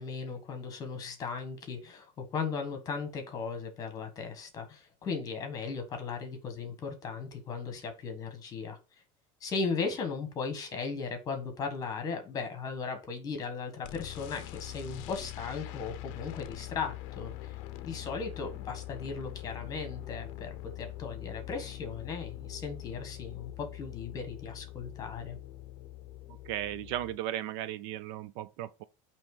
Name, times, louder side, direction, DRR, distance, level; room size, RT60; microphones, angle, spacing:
voice 1, 0.0-8.8 9.4-17.6 17.8-25.4, left 5 dB, 20° left, 1.4 m, -37 dB
sound 1, 13.8-27.2, left 16 dB, 50° left, 0.6 m, -43 dB
voice 2, 26.5-28.8, right 13 dB, 55° right, 0.4 m, -36 dB
8.7 x 3.1 x 4.9 m
cardioid pair, 175°, 17 cm